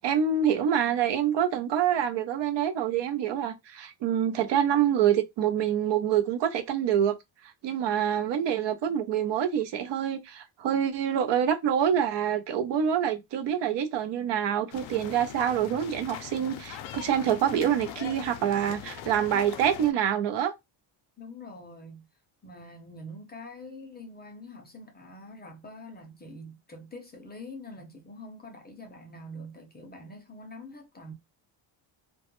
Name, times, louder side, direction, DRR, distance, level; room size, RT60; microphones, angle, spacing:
voice 1, 0.0-7.2 7.6-20.5, right 9 dB, 65° right, 0.6 m, -26 dB
sound 1, 14.7-19.9, left 10 dB, 75° left, 0.5 m, -41 dB
voice 2, 21.2-22.1 22.4-31.1, left 1 dB, 20° left, 0.4 m, -45 dB
2.2 x 2.1 x 2.9 m
cardioid pair, 130°, 47 cm